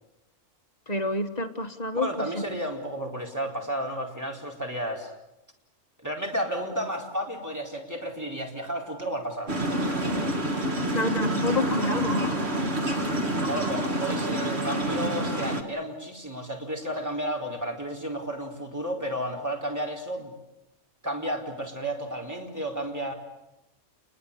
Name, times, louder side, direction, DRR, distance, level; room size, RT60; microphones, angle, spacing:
voice 1, 0.9-2.4 10.9-12.3, left 2 dB, 30° left, 5 dB, 1.9 m, -28 dB
voice 2, 1.9-5.1 6.0-9.6 13.4-20.3 21.0-23.1, equal, 15° right, 0 dB, 4.5 m, -32 dB
sound 1, 9.5-15.6, right 1 dB, 55° right, 2.9 m, -27 dB
28.5 x 22.0 x 8.6 m, 0.89 s
omnidirectional pair, 1.3 m